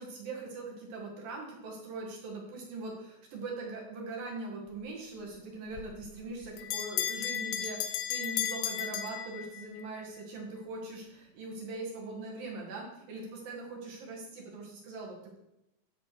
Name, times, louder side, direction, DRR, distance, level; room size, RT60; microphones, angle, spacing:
voice 1, 0.0-15.4, right 3 dB, 70° right, -2 dB, 3.5 m, -41 dB
Bell, 5.7-9.8, left 10 dB, 80° left, 2.2 m, -35 dB
12.5 x 4.3 x 6.3 m, 0.87 s
omnidirectional pair, 4.4 m